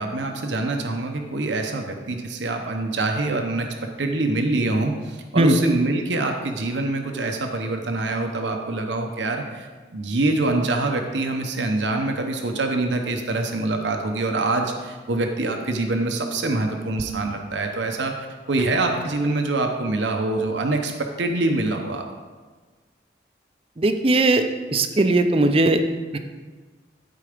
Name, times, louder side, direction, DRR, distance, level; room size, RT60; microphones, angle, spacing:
voice 1, 0.0-3.7 4.0-22.0, right 2 dB, 75° right, 4 dB, 0.8 m, -25 dB
voice 2, 23.8-24.4 24.7-25.8 26.1-26.2, right 2 dB, 30° right, 7 dB, 0.5 m, -18 dB
12.0 x 4.8 x 5.1 m, 1.4 s
head